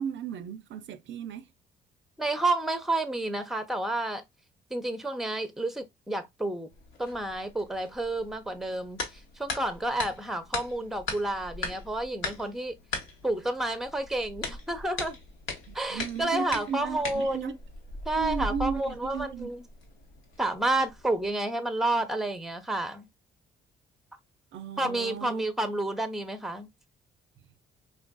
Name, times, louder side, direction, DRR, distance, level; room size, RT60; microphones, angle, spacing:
voice 1, 0.0-1.5 10.8-10.9 15.7-17.5 18.1-19.5 24.5-25.5, right 7 dB, 70° right, 0.4 m, -35 dB
voice 2, 2.2-4.2 4.7-6.7 7.0-12.8 13.2-15.2 15.7-17.6 18.1-19.6 20.4-23.1 24.8-26.7, right 2 dB, ahead, 0.6 m, -30 dB
sound 1, 6.7-21.3, left 3 dB, 80° left, 1.1 m, -40 dB
4.1 x 2.5 x 2.2 m
cardioid pair, 90°, 20 cm